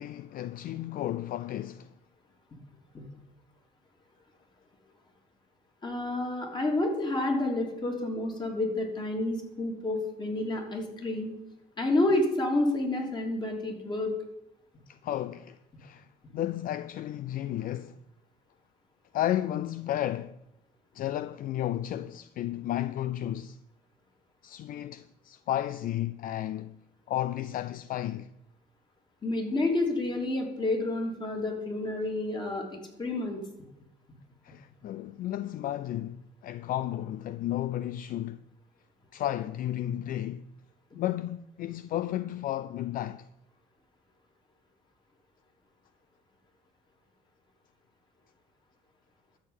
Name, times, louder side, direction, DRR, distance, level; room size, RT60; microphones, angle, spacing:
voice 1, 0.0-1.9 14.9-16.1 16.3-18.0 19.1-20.4 20.9-23.6 24.4-26.8 27.1-28.3 34.4-38.4 39.1-40.5 40.9-43.3, left 12 dB, 55° left, 0.4 m, -33 dB
voice 2, 5.8-11.3 11.8-14.1 29.2-32.7 33.0-33.4, left 2 dB, 25° left, 3.3 m, -29 dB
13.0 x 5.0 x 8.9 m
cardioid pair, 110°, 17 cm